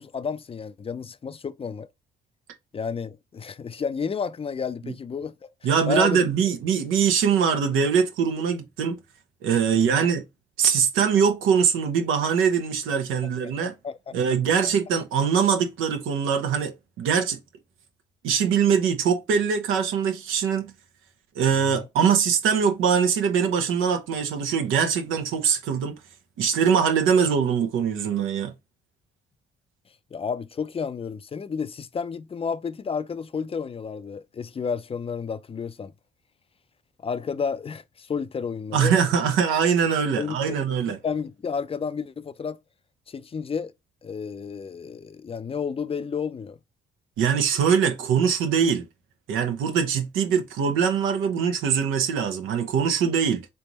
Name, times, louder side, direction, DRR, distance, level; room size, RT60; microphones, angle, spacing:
voice 1, 0.0-1.9 2.7-5.3 5.9-6.2 9.7-10.0 13.2-13.5 13.8-14.1 21.7-21.9 30.1-35.9 37.0-39.0 40.1-40.6 41.0-42.6 43.1-43.7 44.0-46.6, left 6 dB, 30° left, 0.5 m, -31 dB
voice 2, 5.6-9.0 9.4-10.2 10.6-13.7 14.1-17.4 18.2-20.7 21.3-26.0 26.4-28.5 38.7-41.0 47.2-48.9 49.3-53.5, right 7 dB, 90° right, 1.0 m, -22 dB
4.0 x 3.4 x 2.9 m
cardioid pair, 90°, 20 cm